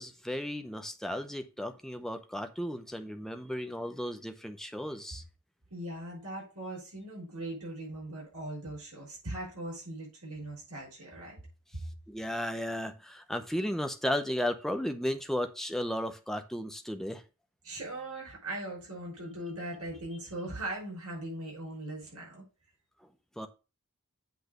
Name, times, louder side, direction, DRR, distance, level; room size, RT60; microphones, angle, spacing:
voice 1, 0.0-5.2 12.1-17.2 23.4-23.5, equal, ahead, 0.7 m, -34 dB
voice 2, 5.7-11.4 11.7-11.9 17.6-22.4, right 1 dB, 80° right, 5.2 m, -40 dB
8.2 x 3.3 x 6.5 m
head